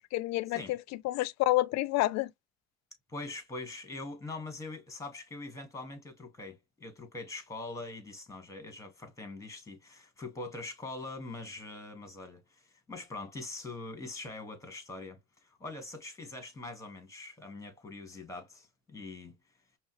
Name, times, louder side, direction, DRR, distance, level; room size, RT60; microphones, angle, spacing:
voice 1, 0.0-2.3, left 17 dB, 55° left, 0.5 m, -29 dB
voice 2, 3.1-19.4, left 2 dB, 10° left, 1.6 m, -43 dB
5.2 x 2.0 x 3.1 m
supercardioid pair, 80°, 34 cm